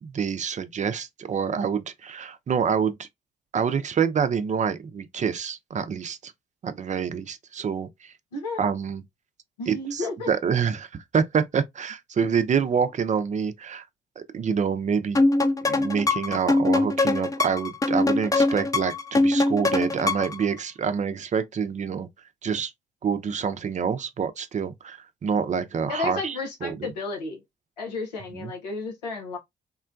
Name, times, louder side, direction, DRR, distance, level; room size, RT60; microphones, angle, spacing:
voice 1, 0.0-3.1 3.5-6.3 6.6-8.1 8.6-9.0 9.7-13.9 14.2-15.2 15.7-22.1 22.4-22.7 23.0-26.9 28.3-28.5, right 6 dB, 35° right, 0.5 m, -27 dB
voice 2, 9.6-10.3 25.9-27.4 27.8-29.4, left 3 dB, 90° left, 0.7 m, -32 dB
sound 1, 15.1-20.4, left 2 dB, 15° left, 0.5 m, -23 dB
3.7 x 2.1 x 2.4 m
hypercardioid pair, 45°, 20 cm